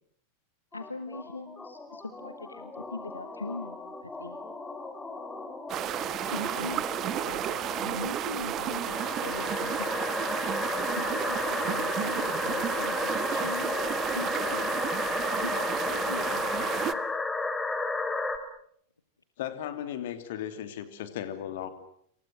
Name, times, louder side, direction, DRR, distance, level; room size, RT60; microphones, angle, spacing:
voice 1, 0.7-4.4 6.3-9.9 11.0-13.8 14.1-14.7 15.4-17.0, left 3 dB, 80° left, 10 dB, 1.6 m, -41 dB
sound 1, 0.7-18.4, left 3 dB, 10° left, 3.0 m, -34 dB
sound 2, 5.7-16.9, right 12 dB, 30° right, 1.3 m, -32 dB
voice 2, 19.4-21.7, left 10 dB, 55° left, 10 dB, 3.0 m, -36 dB
29.5 x 27.5 x 6.4 m, 0.67 s
figure-of-eight pair, 90°, 0 cm